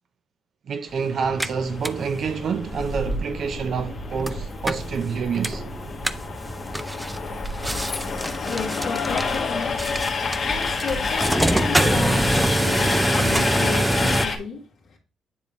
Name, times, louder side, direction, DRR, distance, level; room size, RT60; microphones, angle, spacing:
voice 1, 0.7-5.6, right 6 dB, 60° right, 0.5 m, -27 dB
Train, 0.9-14.4, left 4 dB, 50° left, 1.2 m, -29 dB
sound 1, 1.2-14.3, right 1 dB, 10° right, 0.4 m, -26 dB
voice 2, 8.5-15.0, left 5 dB, 75° left, 1.5 m, -33 dB
9.6 x 3.5 x 3.0 m
cardioid pair, 90°, 0 cm